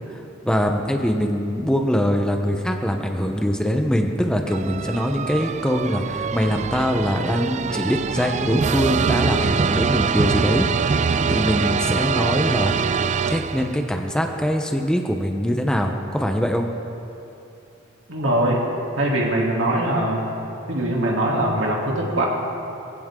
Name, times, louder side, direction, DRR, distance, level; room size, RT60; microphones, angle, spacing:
voice 1, 0.1-16.7, equal, 5° left, 3 dB, 0.8 m, -23 dB
sound 1, 4.5-14.0, right 5 dB, 35° right, 0.3 m, -24 dB
voice 2, 18.1-18.6 19.0-20.2 20.7-22.3, right 1 dB, 70° right, -2 dB, 2.9 m, -22 dB
22.5 x 15.5 x 3.8 m, 2.8 s
head